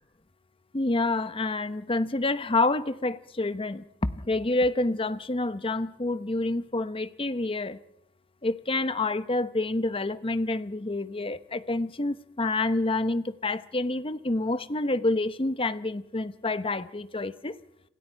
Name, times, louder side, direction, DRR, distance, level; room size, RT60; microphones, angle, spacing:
voice 1, 0.7-7.8 8.4-17.5, left 2 dB, 30° left, 0.9 m, -28 dB
30.0 x 27.0 x 4.6 m
head